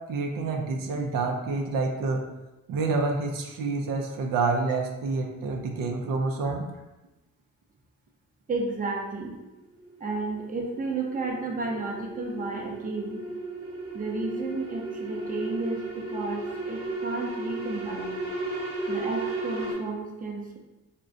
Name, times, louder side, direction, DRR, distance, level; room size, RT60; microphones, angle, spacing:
voice 1, 0.1-2.2 2.7-6.7, right 3 dB, 85° right, 2 dB, 0.5 m, -28 dB
voice 2, 8.5-9.4 10.0-13.2 13.9-18.2 18.9-20.6, right 3 dB, 25° right, 0 dB, 0.5 m, -32 dB
sound 1, 9.4-19.7, right 2 dB, 45° right, 0.9 m, -35 dB
2.5 x 2.1 x 3.7 m, 1.0 s
cardioid pair, 90°, 32 cm